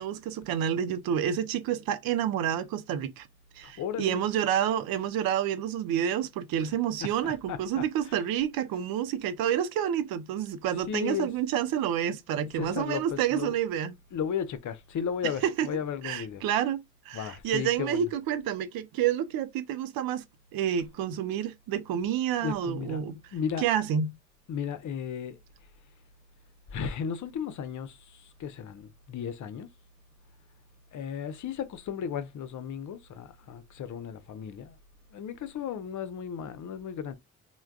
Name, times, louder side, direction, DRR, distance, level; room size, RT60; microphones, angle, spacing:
voice 1, 0.0-3.3 3.6-14.0 15.6-15.7 16.0-20.2 20.5-23.2 23.6-24.1, right 9 dB, 75° right, 0.6 m, -29 dB
voice 2, 3.6-4.2 7.2-8.2 10.9-11.3 12.4-13.5 14.1-16.4 17.1-18.1 22.4-23.7 24.5-25.4 26.7-29.7 30.9-34.8 35.1-37.1, left 8 dB, 55° left, 0.7 m, -35 dB
3.3 x 2.2 x 2.3 m
hypercardioid pair, 50°, 36 cm